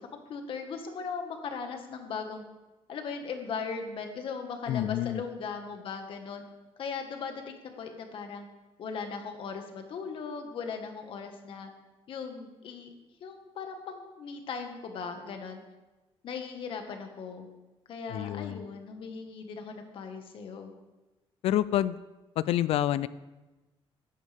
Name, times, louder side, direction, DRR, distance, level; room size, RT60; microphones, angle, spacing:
voice 1, 0.1-2.5 2.9-6.4 6.8-8.5 8.8-11.7 12.1-12.9 13.2-15.6 16.2-17.5 17.9-20.7, left 5 dB, 60° left, 5 dB, 1.7 m, -38 dB
voice 2, 4.7-5.2 18.1-18.6 21.4-22.0 22.4-23.1, left 12 dB, 80° left, 17 dB, 0.4 m, -28 dB
16.0 x 11.0 x 3.6 m, 1.1 s
cardioid pair, 135°, 10 cm